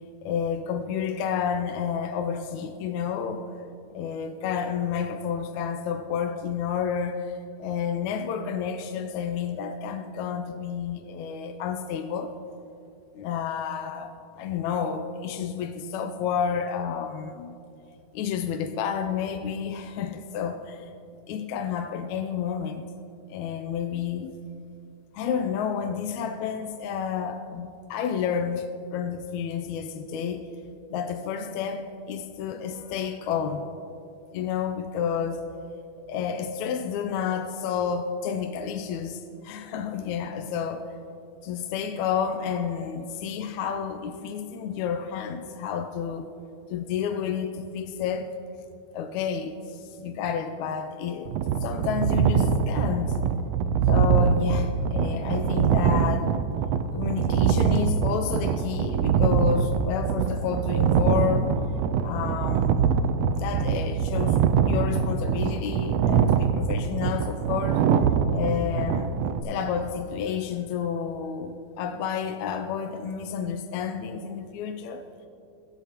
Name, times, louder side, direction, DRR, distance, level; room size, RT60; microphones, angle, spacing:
voice 1, 0.2-3.5 3.9-7.3 7.6-12.3 13.1-17.6 18.1-20.9 21.3-22.9 23.3-24.4 25.1-30.5 30.9-33.7 34.3-35.5 36.1-40.9 41.4-46.3 46.7-48.3 48.9-51.3 51.6-53.2 53.9-56.3 56.9-61.6 62.0-62.9 63.3-67.8 68.3-69.1 69.4-75.0, left 7 dB, 75° left, 1.8 m, -30 dB
sound 1, 51.3-69.4, right 7 dB, 90° right, 1.4 m, -23 dB
23.0 x 12.0 x 2.9 m
omnidirectional pair, 3.6 m